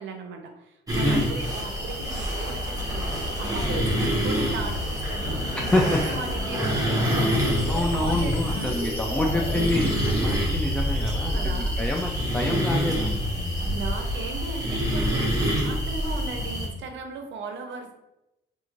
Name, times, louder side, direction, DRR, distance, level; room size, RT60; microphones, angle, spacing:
voice 1, 0.0-8.8 11.3-11.8 13.7-17.9, right 4 dB, 70° right, 5 dB, 0.6 m, -37 dB
sound 1, 0.9-16.7, equal, 15° right, 0.8 m, -27 dB
sound 2, 2.9-8.4, left 2 dB, 80° left, 0.8 m, -37 dB
voice 2, 5.6-6.0 7.7-13.1, left 1 dB, 5° left, -1 dB, 0.3 m, -27 dB
sound 3, 7.0-12.0, left 1 dB, 30° left, 0.7 m, -33 dB
2.9 x 2.6 x 2.4 m, 0.90 s
cardioid pair, 90°, 20 cm